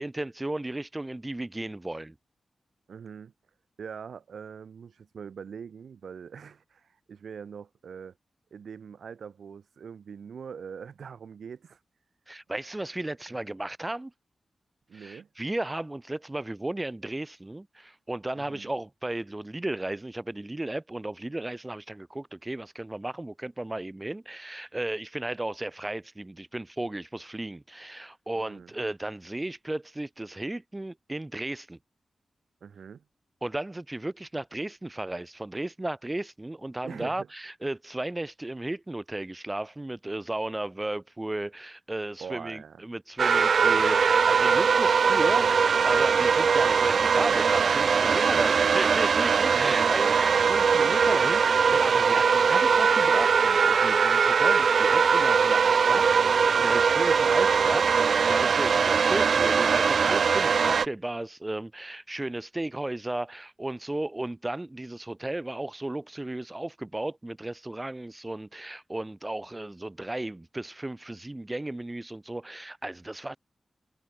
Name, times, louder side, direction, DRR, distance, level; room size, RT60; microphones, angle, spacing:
voice 1, 0.0-2.1 12.3-14.1 14.9-31.8 33.4-73.4, right 1 dB, 15° right, 1.7 m, -34 dB
voice 2, 2.9-3.3 3.8-8.1 8.5-11.8 14.9-15.3 18.3-18.7 28.3-28.7 32.6-33.0 36.8-37.3 42.2-42.8 49.5-50.0, right 6 dB, 85° right, 6.7 m, -42 dB
sound 1, 43.2-60.9, right 6 dB, 65° right, 0.3 m, -21 dB
wide cardioid pair, 165°, 0 cm